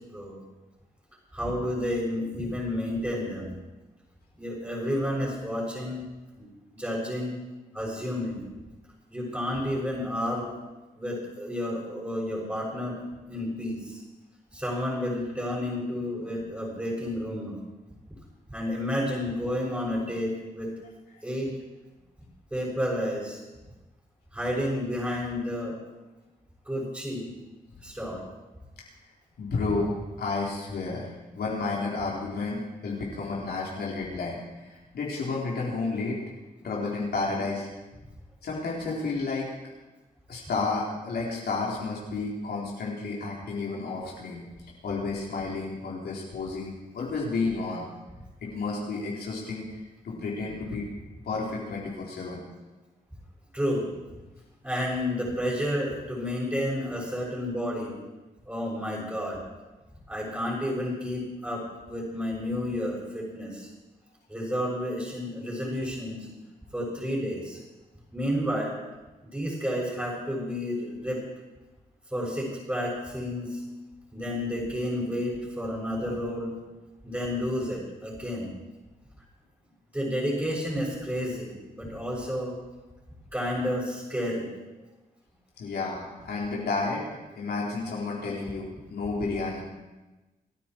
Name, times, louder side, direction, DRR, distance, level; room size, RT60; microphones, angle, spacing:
voice 1, 1.3-3.5 4.4-6.0 6.4-6.5 6.8-7.4 7.7-8.4 9.1-10.5 10.9-12.9 13.3-14.0 14.5-17.6 18.5-20.7 21.2-21.5 22.5-23.4 24.3-25.7 26.7-27.3 27.8-28.2 53.5-53.9 54.6-57.9 58.5-59.4 60.1-63.7 64.3-66.4 66.7-67.6 68.1-68.7 69.3-71.2 72.1-73.6 74.1-76.5 77.0-78.5 79.9-82.5 83.3-84.5, equal, 10° right, -8 dB, 6.4 m, -31 dB
voice 2, 29.4-31.1 31.3-36.2 36.6-37.7 38.4-39.5 40.3-44.4 44.8-47.8 48.4-49.7 50.0-50.9 51.3-52.4 85.6-87.0 87.3-89.6, left 3 dB, 80° left, -4 dB, 3.8 m, -31 dB
27.0 x 9.6 x 4.6 m, 1.1 s
cardioid pair, 75°, 16 cm